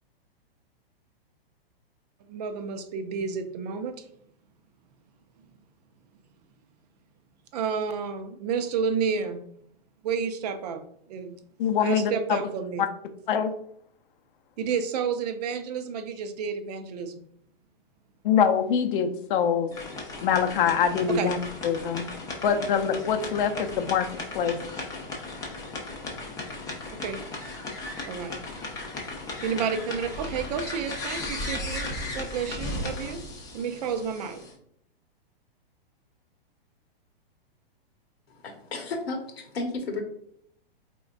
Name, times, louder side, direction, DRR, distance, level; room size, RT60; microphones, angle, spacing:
voice 1, 2.3-4.1 7.5-9.4 10.0-10.8 11.1-11.4 11.8-12.8 14.6-17.1 21.1-21.3 26.9-27.2 28.1-28.4 29.4-33.2 33.5-34.4, right 6 dB, 40° right, 9 dB, 0.4 m, -30 dB
voice 2, 11.6-12.4 13.3-13.5 18.2-19.7 20.2-21.4 21.6-22.0 22.4-24.1 24.3-24.6, left 7 dB, 55° left, 7 dB, 0.6 m, -24 dB
sound 1, 19.7-34.5, left 2 dB, 10° left, 0.5 m, -36 dB
voice 3, 38.3-40.0, left 3 dB, 80° left, 4 dB, 1.2 m, -33 dB
3.9 x 3.6 x 2.4 m, 0.68 s
hypercardioid pair, 135°, 31 cm